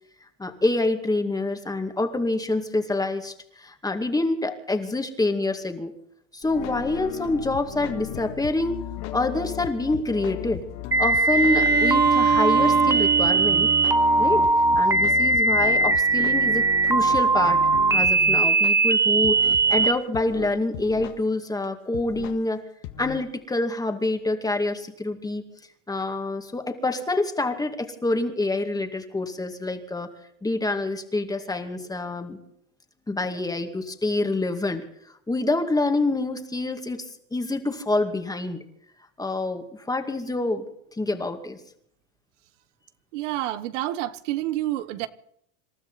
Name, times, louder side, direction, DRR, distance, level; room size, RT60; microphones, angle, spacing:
voice 1, 0.4-5.9 6.3-8.8 9.1-10.6 11.0-13.7 14.2-14.5 14.8-22.6 23.0-25.4 25.9-30.1 30.4-32.4 33.1-34.8 35.3-37.1 37.3-38.6 39.2-40.7 41.0-41.6, left 2 dB, 10° left, 2.2 m, -26 dB
sound 1, 6.4-18.7 19.2-21.2 21.6-21.7 21.9-22.4 22.8-23.2, left 13 dB, 70° left, 1.7 m, -36 dB
sound 2, 10.9-19.9, right 3 dB, 10° right, 0.7 m, -20 dB
Bowed string instrument, 11.3-15.1, right 10 dB, 30° right, 1.5 m, -28 dB
voice 2, 43.1-45.1, right 14 dB, 85° right, 1.2 m, -28 dB
27.0 x 13.0 x 4.1 m
supercardioid pair, 120°, 36 cm